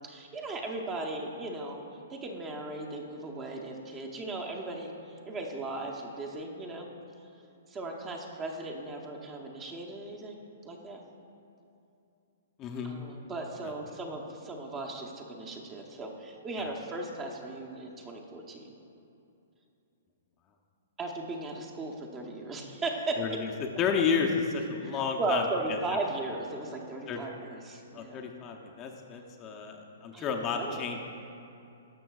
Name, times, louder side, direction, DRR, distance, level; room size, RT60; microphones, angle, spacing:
voice 1, 0.0-1.8 2.1-6.9 7.7-10.4 10.6-11.0 12.8-18.7 21.0-23.4 24.9-28.3 30.1-30.9, right 2 dB, 20° right, 1 dB, 0.8 m, -37 dB
voice 2, 12.6-12.9 13.6-13.7 23.2-23.5 23.8-25.4 25.7-25.8 27.1-27.2 27.9-31.0, left 6 dB, 30° left, 2 dB, 0.6 m, -31 dB
12.0 x 6.3 x 2.4 m, 2.7 s
hypercardioid pair, 130°, 0 cm